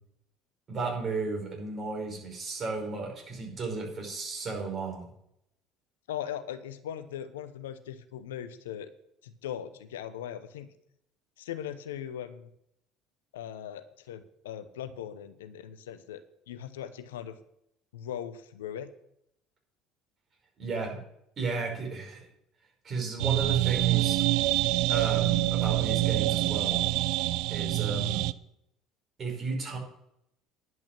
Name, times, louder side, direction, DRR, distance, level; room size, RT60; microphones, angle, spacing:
voice 1, 0.7-5.1 20.6-21.0 21.4-22.2 22.8-24.3 24.9-26.9 27.5-28.2 29.2-29.8, right 3 dB, 40° right, -1 dB, 5.5 m, -34 dB
voice 2, 6.1-8.9 9.2-10.7 11.4-12.5 13.3-16.2 16.5-17.4 17.9-18.9, left 10 dB, 80° left, 11 dB, 0.8 m, -39 dB
sound 1, 23.2-28.3, right 17 dB, 65° right, 0.3 m, -26 dB
11.0 x 6.1 x 7.4 m, 0.74 s
hypercardioid pair, 65°, 0 cm